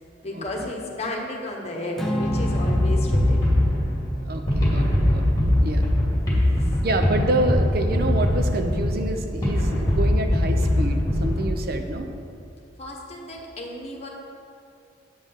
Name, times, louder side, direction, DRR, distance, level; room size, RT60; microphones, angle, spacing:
voice 1, 0.2-3.7 6.4-6.7 12.8-14.1, left 1 dB, 35° left, 0 dB, 1.2 m, -33 dB
Acoustic guitar / Strum, 2.0-6.4, right 1 dB, ahead, 0.8 m, -32 dB
sound 1, 2.2-11.8, left 1 dB, 20° left, 2.4 m, -22 dB
voice 2, 4.2-5.4 5.6-5.9 6.8-12.1, right 1 dB, 55° right, 5 dB, 0.8 m, -27 dB
8.8 x 5.5 x 6.5 m, 2.5 s
head